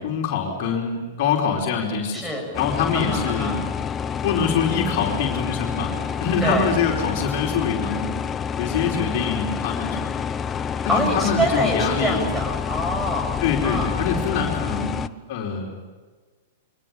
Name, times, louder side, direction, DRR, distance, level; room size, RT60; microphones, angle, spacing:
voice 1, 0.0-2.3 2.5-3.6 4.2-5.9 6.2-8.1 8.6-10.1 10.8-12.2 13.4-15.7, left 6 dB, 45° left, 0 dB, 4.6 m, -24 dB
voice 2, 2.1-2.5 2.9-3.6 6.4-6.7 10.9-13.9, equal, 10° right, 4 dB, 6.9 m, -25 dB
sound 1, 2.5-15.1, left 7 dB, 20° left, 0.8 m, -28 dB
29.5 x 24.5 x 7.1 m, 1.4 s
figure-of-eight pair, 100°, 0 cm